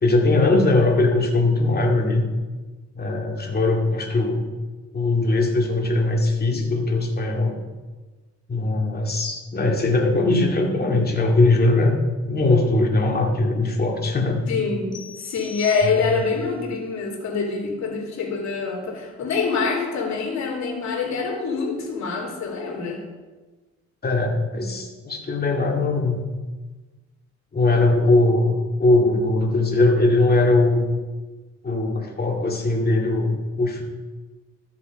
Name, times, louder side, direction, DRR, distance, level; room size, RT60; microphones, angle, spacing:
voice 1, 0.0-2.3 3.0-4.5 4.9-7.5 8.5-12.0 12.2-14.4 24.0-26.2 27.5-30.8 31.6-33.8, left 2 dB, 30° left, 1 dB, 2.3 m, -20 dB
voice 2, 14.5-23.0, left 4 dB, 65° left, -1 dB, 3.2 m, -25 dB
sound 1, 14.9-16.4, left 6 dB, 15° left, 2.0 m, -41 dB
13.0 x 7.0 x 5.2 m, 1.3 s
cardioid pair, 90°, 30 cm